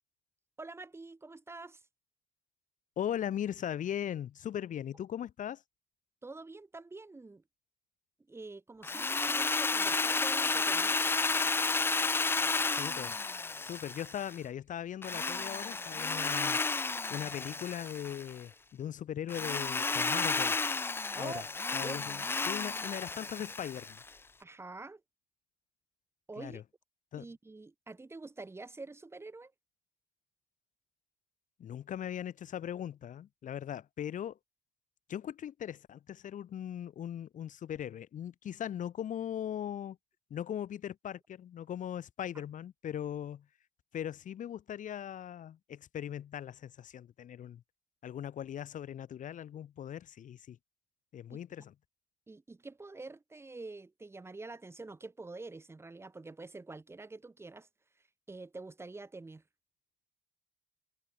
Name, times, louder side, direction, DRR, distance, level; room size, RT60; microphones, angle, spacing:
voice 1, 0.6-1.8 6.2-7.4 8.3-11.1 21.2-21.4 21.8-22.0 24.4-25.0 26.3-26.6 27.2-29.5 51.3-51.4 52.3-57.7 58.3-59.4, right 3 dB, 15° right, 7.1 m, -46 dB
voice 2, 3.0-5.6 12.7-13.2 13.6-16.6 17.1-20.6 21.2-21.4 21.7-24.0 26.4-26.6 27.1-27.3 31.6-34.4 35.1-40.0 40.3-43.5 43.9-47.6 48.0-50.6 51.1-51.7, left 10 dB, 50° left, 6.9 m, -39 dB
Drill, 8.8-14.4 15.0-18.3 19.3-24.1, left 4 dB, 15° left, 0.4 m, -32 dB
cardioid pair, 135°, 16 cm